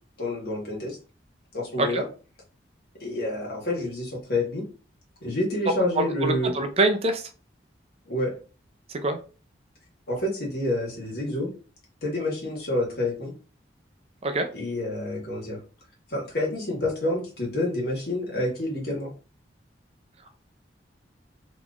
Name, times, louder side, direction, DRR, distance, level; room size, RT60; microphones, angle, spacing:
voice 1, 0.2-1.0 1.5-2.1 3.0-4.6 5.2-6.6 8.1-8.3 10.1-11.5 12.0-13.3 14.5-15.6 16.1-19.1, left 1 dB, 55° left, -2 dB, 1.5 m, -28 dB
voice 2, 6.0-7.2 9.0-9.2 14.2-14.5, right 2 dB, 35° right, 6 dB, 0.4 m, -24 dB
3.9 x 2.9 x 2.4 m, 0.36 s
head